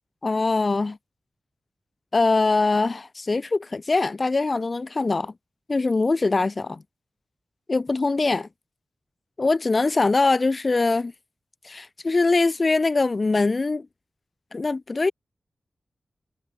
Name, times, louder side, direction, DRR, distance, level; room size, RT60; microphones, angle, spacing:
voice 1, 0.2-1.0 2.1-5.3 5.7-6.8 7.7-8.5 9.4-11.1 11.6-13.9 14.5-15.1, left 3 dB, 35° left, 0.5 m, -22 dB
wide cardioid pair, 125°, 0 cm